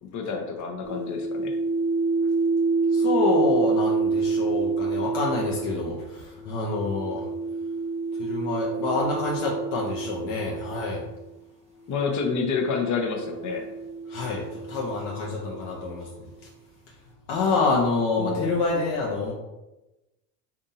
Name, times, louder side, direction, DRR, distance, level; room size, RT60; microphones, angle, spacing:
voice 1, 0.0-1.5 11.9-13.7 18.2-18.6, left 5 dB, 35° left, 3 dB, 0.8 m, -28 dB
sound 1, 0.8-11.2 12.1-15.9, right 4 dB, 10° right, 0.9 m, -28 dB
voice 2, 2.9-7.3 8.2-11.0 14.1-16.3 17.3-19.3, left 3 dB, 75° left, -2 dB, 0.8 m, -27 dB
3.9 x 2.6 x 2.7 m, 1.0 s
supercardioid pair, 100°, 49 cm